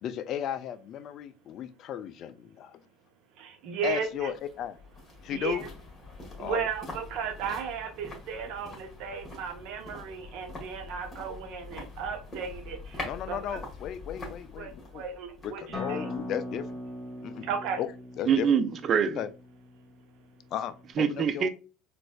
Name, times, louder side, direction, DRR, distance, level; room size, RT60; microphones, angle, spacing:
voice 1, 0.0-2.8 3.8-4.8 5.2-5.6 6.4-6.6 13.0-15.0 15.4-16.7 17.2-17.5 17.8-17.9 18.2-18.5 19.2-19.3 20.5-21.5, left 10 dB, 50° left, 0.3 m, -35 dB
voice 2, 3.4-4.3 5.3-5.7 6.4-13.6 14.6-16.1 17.5-17.8, right 6 dB, 65° right, 0.8 m, -35 dB
sound 1, 3.8-17.0 17.2-17.3, left 2 dB, 30° left, 1.5 m, -44 dB
Acoustic guitar, 15.7-20.9, left 1 dB, 5° left, 1.1 m, -41 dB
voice 3, 18.3-19.2 21.0-21.5, right 7 dB, 40° right, 0.4 m, -24 dB
4.0 x 2.5 x 2.3 m
supercardioid pair, 95°, 0 cm